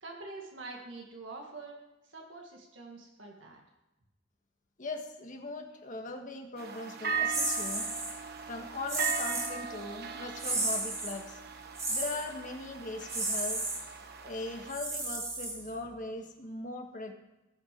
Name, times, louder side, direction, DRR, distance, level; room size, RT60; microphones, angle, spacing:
voice 1, 0.0-1.8 2.1-3.6, right 3 dB, 75° right, 0 dB, 1.9 m, -45 dB
voice 2, 4.8-7.9 8.5-11.4 11.9-13.6 14.2-17.1, left 2 dB, 45° left, 3 dB, 1.6 m, -40 dB
sound 1, 6.6-14.7, right 6 dB, 55° right, 1.1 m, -39 dB
sound 2, 7.3-8.1 8.9-9.6 10.4-11.2 11.8-12.3 13.1-13.8 14.7-15.9, right 2 dB, 20° right, 2.5 m, -33 dB
18.5 x 6.2 x 5.2 m, 0.99 s
head